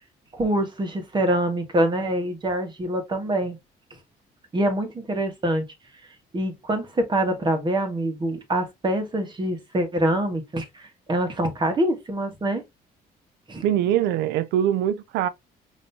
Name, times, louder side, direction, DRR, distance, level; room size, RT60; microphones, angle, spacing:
voice 1, 0.3-3.6 4.5-5.7 6.3-12.6 13.5-13.6, right 1 dB, 25° right, 1.6 m, -25 dB
voice 2, 13.6-15.3, right 11 dB, 85° right, 0.4 m, -23 dB
5.3 x 3.1 x 2.7 m
cardioid pair, 110°, 17 cm